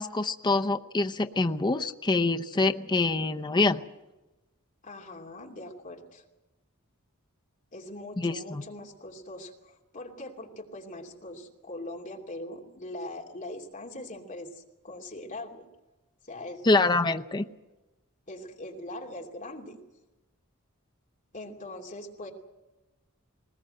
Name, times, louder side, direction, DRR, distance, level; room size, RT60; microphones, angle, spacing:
voice 1, 0.0-3.8 8.2-8.6 16.6-17.5, left 3 dB, 20° left, 6 dB, 0.7 m, -25 dB
voice 2, 4.8-6.2 7.7-15.6 16.2-16.7 18.3-19.8 21.3-22.3, left 1 dB, 35° left, 1 dB, 2.8 m, -41 dB
20.0 x 20.0 x 7.8 m, 1.1 s
head